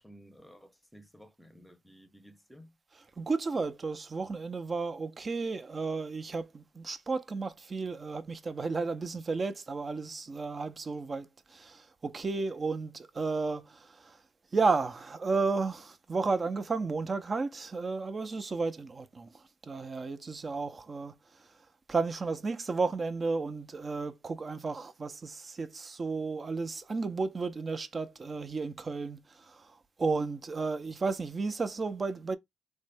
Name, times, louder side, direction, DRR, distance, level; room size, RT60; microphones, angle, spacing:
voice 1, 0.0-2.8, equal, ahead, 0.8 m, -55 dB
voice 2, 2.9-14.2 14.5-21.6 21.9-32.4, right 4 dB, 35° right, 0.6 m, -33 dB
3.6 x 2.1 x 3.3 m
cardioid pair, 90°, 0 cm